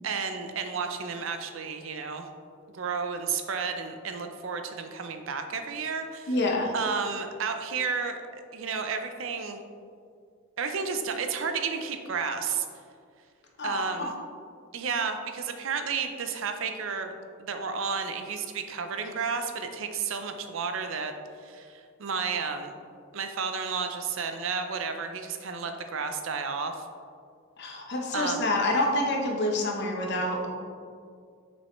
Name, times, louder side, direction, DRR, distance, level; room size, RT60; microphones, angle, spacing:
voice 1, 0.0-2.3 2.7-6.4 6.7-8.2 8.5-9.6 10.6-12.7 13.6-14.1 14.7-17.1 17.4-21.1 21.4-22.7 23.1-26.7 28.1-28.4, right 5 dB, 70° right, 7 dB, 0.5 m, -32 dB
voice 2, 6.3-6.7 13.6-14.1 27.6-30.5, left 1 dB, 55° left, 0 dB, 0.9 m, -27 dB
6.3 x 5.3 x 3.1 m, 2.2 s
head